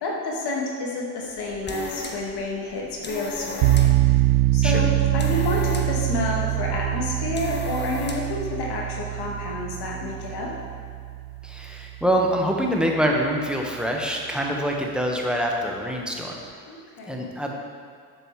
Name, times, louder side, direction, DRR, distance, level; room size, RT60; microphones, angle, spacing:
voice 1, 0.0-4.2 4.5-4.9 5.1-10.5 16.7-17.3, left 2 dB, 55° left, -2 dB, 2.2 m, -29 dB
sound 1, 1.3-8.4, left 3 dB, 25° left, 1.3 m, -37 dB
sound 2, 3.6-12.5, right 16 dB, 70° right, 0.5 m, -24 dB
voice 2, 11.4-16.4 17.1-17.5, equal, ahead, -1 dB, 1.6 m, -25 dB
12.0 x 6.8 x 3.4 m, 2.1 s
hypercardioid pair, 50°, 46 cm